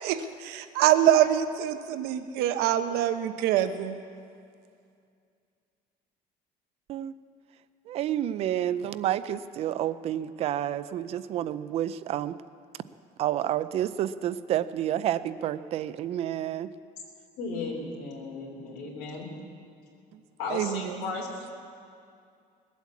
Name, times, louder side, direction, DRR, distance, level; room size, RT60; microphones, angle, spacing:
voice 1, 0.0-4.0 20.5-21.2, right 11 dB, 85° right, 9 dB, 0.9 m, -25 dB
voice 2, 7.9-12.4 13.2-16.7, right 11 dB, 40° right, 14 dB, 0.4 m, -29 dB
voice 3, 17.4-19.3 20.4-21.3, left 4 dB, 85° left, -2 dB, 3.4 m, -35 dB
20.0 x 8.3 x 8.3 m, 2.3 s
cardioid pair, 180°, 16 cm